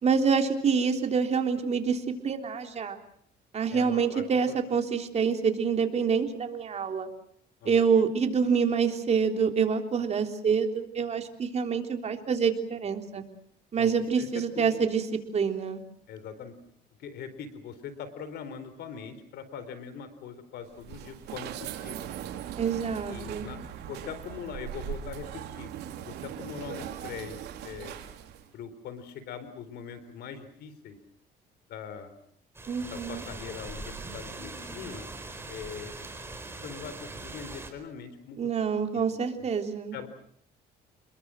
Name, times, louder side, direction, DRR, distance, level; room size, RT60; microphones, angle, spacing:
voice 1, 0.0-3.0 3.5-7.1 7.7-13.2 13.7-15.0 15.3-15.8 22.6-23.5 32.7-33.2 38.4-40.0, right 6 dB, 40° right, 5 dB, 3.6 m, -26 dB
voice 2, 3.7-4.5 7.6-7.8 13.8-13.9 14.2-14.9 16.1-16.6 17.0-22.1 23.1-25.7 26.0-28.0 28.5-31.0 31.7-32.2 32.9-35.1 35.5-35.9 36.6-39.0 39.4-39.5 39.9-40.1, left 7 dB, 70° left, 12 dB, 4.1 m, -42 dB
sound 1, 20.6-28.5, right 10 dB, 80° right, 3.5 m, -40 dB
sound 2, 32.5-37.7, right 2 dB, 15° right, 4.4 m, -41 dB
28.0 x 22.0 x 7.7 m, 0.65 s
cardioid pair, 110°, 17 cm